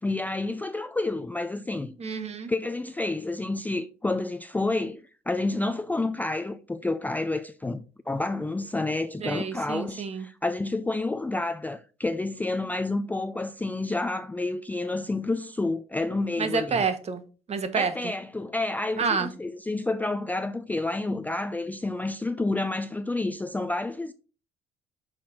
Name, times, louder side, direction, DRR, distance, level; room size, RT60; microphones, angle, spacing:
voice 1, 0.0-2.0 2.5-16.9 17.8-24.1, left 2 dB, 10° left, 0.4 m, -29 dB
voice 2, 2.0-2.5 9.2-10.3 16.4-17.2 17.5-18.1 19.0-19.3, right 5 dB, 40° right, 1.2 m, -28 dB
6.0 x 4.2 x 4.9 m
cardioid pair, 110°, 17 cm